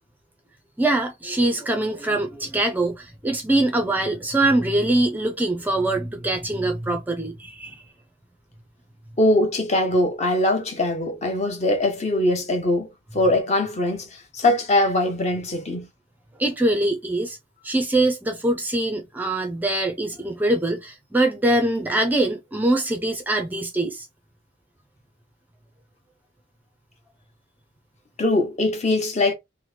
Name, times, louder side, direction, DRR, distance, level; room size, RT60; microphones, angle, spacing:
voice 1, 0.8-7.8 16.4-17.4 17.6-24.1, right 1 dB, 10° right, 0.4 m, -23 dB
voice 2, 9.2-12.9 13.1-14.1 14.3-15.9 28.2-29.3, left 1 dB, 35° left, 0.7 m, -21 dB
3.0 x 2.1 x 3.2 m
head